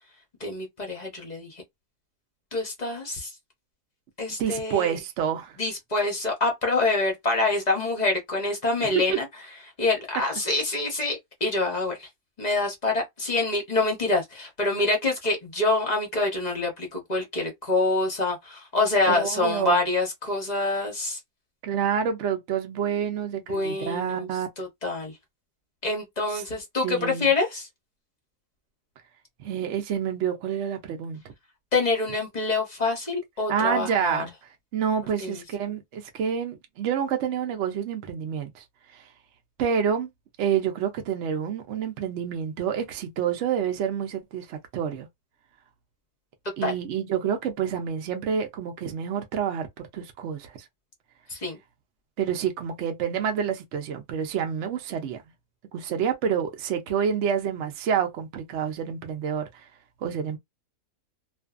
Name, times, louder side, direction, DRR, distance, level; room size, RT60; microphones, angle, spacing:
voice 1, 0.4-1.6 2.5-3.3 4.2-5.0 5.6-9.3 9.8-12.1 12.4-21.2 23.5-24.3 24.6-25.2 25.8-27.7 31.7-34.2 35.2-35.4 46.6-46.7 51.3-51.6, left 2 dB, 40° left, 0.6 m, -26 dB
voice 2, 4.4-5.6 8.8-9.2 19.1-19.8 21.6-24.5 26.3-26.4 26.8-27.3 29.4-31.3 33.5-34.3 34.7-38.6 38.9-39.1 39.6-40.1 40.4-45.1 46.6-50.6 52.2-55.2 55.7-59.6 60.0-60.4, right 8 dB, 65° right, 0.7 m, -28 dB
2.5 x 2.4 x 2.4 m
omnidirectional pair, 1.8 m